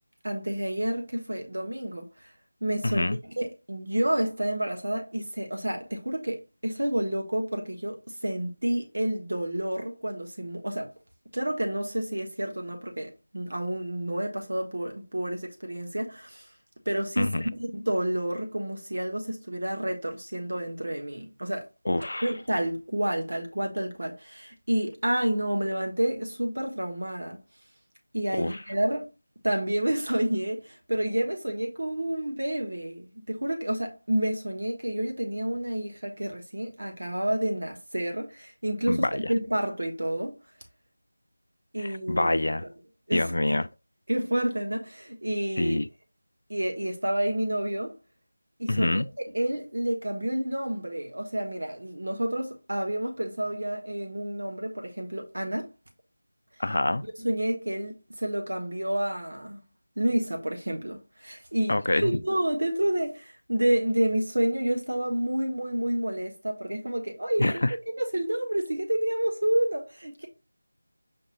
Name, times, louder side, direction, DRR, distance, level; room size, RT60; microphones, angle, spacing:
voice 1, 0.2-2.3 2.6-10.9 11.3-16.5 16.8-17.3 17.6-21.7 22.2-27.4 28.1-29.1 29.4-40.3 41.7-42.3 42.6-42.7 43.1-43.6 44.1-45.8 46.5-48.0 48.6-55.7 57.2-59.6 60.0-67.6 67.9-70.3, right 1 dB, 80° right, 1.3 m, -29 dB
voice 2, 2.8-3.2 17.2-17.5 21.9-22.3 28.4-28.6 38.9-39.2 42.1-42.7 43.1-43.6 45.6-45.9 48.7-49.1 56.6-57.0 61.7-62.1 67.4-67.7, left 1 dB, 65° left, 0.3 m, -25 dB
5.1 x 2.6 x 3.1 m
figure-of-eight pair, 180°, 0 cm